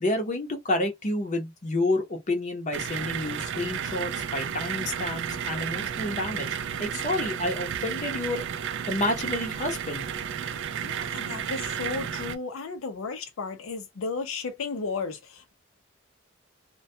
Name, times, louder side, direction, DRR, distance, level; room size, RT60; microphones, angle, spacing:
voice 1, 0.0-6.5 6.8-8.4 8.9-10.1, left 1 dB, 40° left, 0.7 m, -29 dB
sound 1, 2.7-12.4, right 8 dB, 65° right, 0.4 m, -32 dB
voice 2, 10.8-15.5, left 4 dB, 80° left, 0.5 m, -34 dB
2.2 x 2.2 x 2.6 m
head